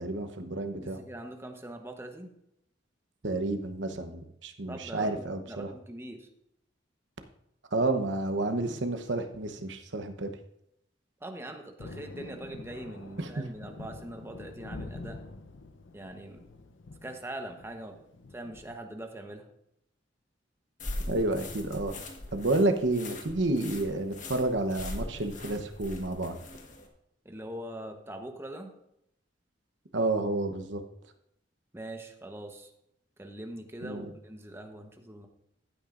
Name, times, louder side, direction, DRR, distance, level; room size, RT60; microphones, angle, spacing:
voice 1, 0.0-1.0 3.2-5.7 7.7-10.3 21.1-22.0 22.3-26.4 29.9-30.8 33.8-34.1, right 2 dB, 70° right, 7 dB, 1.0 m, -30 dB
voice 2, 0.8-2.3 4.7-6.3 11.2-15.2 15.9-16.4 17.0-18.0 18.3-19.5 27.2-28.7 31.7-32.7 33.2-35.3, right 1 dB, 15° right, 4 dB, 1.0 m, -42 dB
Thunder, 11.8-18.8, left 2 dB, 90° left, 0.8 m, -46 dB
sound 1, 20.8-26.9, left 2 dB, 45° left, 1.4 m, -41 dB
15.0 x 8.7 x 2.6 m, 0.79 s
head